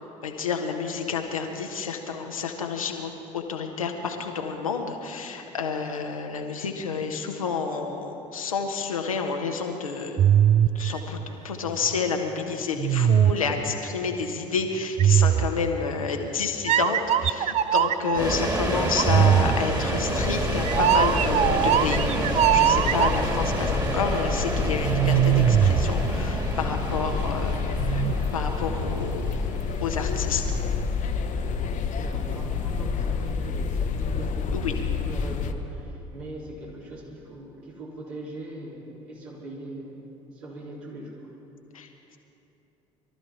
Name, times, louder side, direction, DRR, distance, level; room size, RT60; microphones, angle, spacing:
voice 1, 0.2-10.2 10.7-11.2 11.4-28.0 28.3-29.4 29.8-30.6 34.5-34.7 41.7-41.9, left 5 dB, 85° left, 3 dB, 1.2 m, -30 dB
sound 1, 10.2-12.0 12.8-13.7 15.0-16.0 16.7-18.3 19.0-23.5 24.8-26.6 27.8-28.1, right 10 dB, 40° right, 0.5 m, -22 dB
sound 2, 18.1-35.1, right 2 dB, 20° right, 2.5 m, -30 dB
sound 3, 20.1-35.5, left 5 dB, 45° left, 1.0 m, -29 dB
voice 2, 32.0-40.0 40.3-41.3, right 1 dB, 70° right, -5 dB, 3.7 m, -40 dB
23.0 x 13.0 x 4.4 m, 2.8 s
figure-of-eight pair, 55°, 17 cm